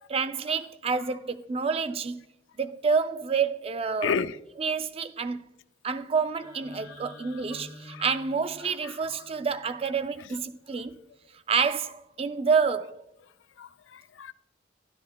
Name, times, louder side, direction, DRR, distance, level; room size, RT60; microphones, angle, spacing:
voice 1, 0.1-2.2 2.6-4.1 4.6-5.5 5.8-10.9 11.5-13.0, right 5 dB, 30° right, 0.4 m, -28 dB
voice 2, 4.0-4.4 7.5-7.6 7.9-8.0 8.6-9.2 13.6-14.3, left 6 dB, 75° left, 0.4 m, -33 dB
sound 1, 6.2-10.3, left 2 dB, 45° left, 1.8 m, -49 dB
13.0 x 12.0 x 2.3 m
head